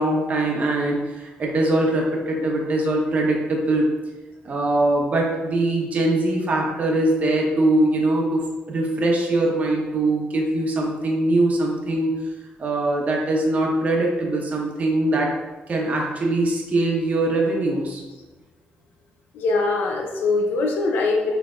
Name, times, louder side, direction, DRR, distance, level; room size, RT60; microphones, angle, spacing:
voice 1, 0.0-3.9 4.4-12.2 12.6-15.3 15.7-18.0, right 2 dB, 45° right, -1 dB, 1.1 m, -22 dB
voice 2, 19.3-21.4, left 3 dB, 85° left, 1 dB, 0.6 m, -22 dB
6.2 x 3.3 x 2.4 m, 1.2 s
cardioid pair, 95°, 3 cm